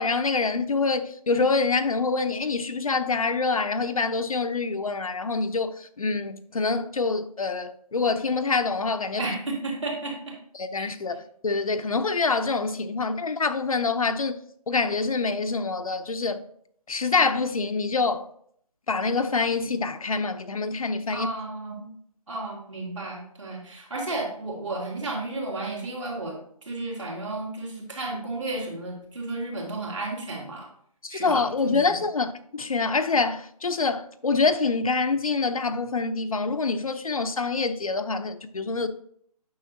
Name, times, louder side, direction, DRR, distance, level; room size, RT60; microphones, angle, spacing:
voice 1, 0.0-9.2 10.5-14.4 14.7-16.4 16.9-18.3 18.9-21.3 31.0-38.9, left 4 dB, 60° left, 0.7 m, -26 dB
voice 2, 9.2-10.3 10.8-10.9 21.1-21.9 22.3-30.7 31.1-32.0, right 2 dB, 50° right, 2.9 m, -33 dB
9.4 x 6.3 x 2.8 m
hypercardioid pair, 175°, 20 cm